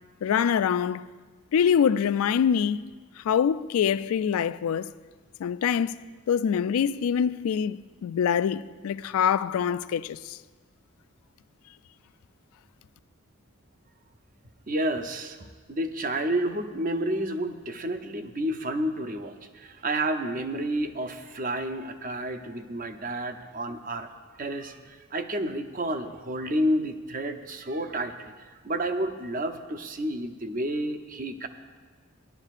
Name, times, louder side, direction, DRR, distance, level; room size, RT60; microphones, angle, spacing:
voice 1, 0.2-1.0 1.5-2.9 3.2-4.9 5.4-6.0 6.3-10.4, left 8 dB, 80° left, 0.3 m, -25 dB
voice 2, 14.7-24.1 24.4-28.3 28.6-31.5, right 1 dB, 40° right, 0.6 m, -30 dB
17.0 x 11.5 x 2.5 m
head